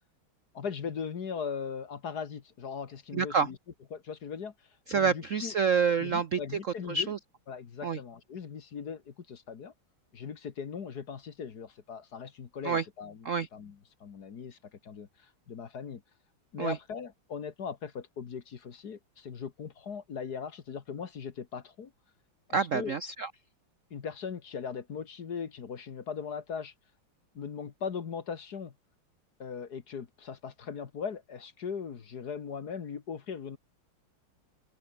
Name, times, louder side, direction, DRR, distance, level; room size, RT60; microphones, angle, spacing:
voice 1, 0.5-3.6 3.9-5.5 6.0-7.1 7.5-9.7 10.1-13.3 13.5-13.8 14.0-16.0 16.5-21.9 22.5-22.9 23.9-26.7 27.3-28.7 29.4-33.6, left 6 dB, 50° left, 1.9 m, -39 dB
voice 2, 3.1-3.5 4.9-6.4 6.9-7.2 7.8-8.0 12.6-12.8 13.2-13.5 16.6-16.8 22.5-23.3, right 5 dB, 55° right, 0.9 m, -27 dB
open air
omnidirectional pair, 2.4 m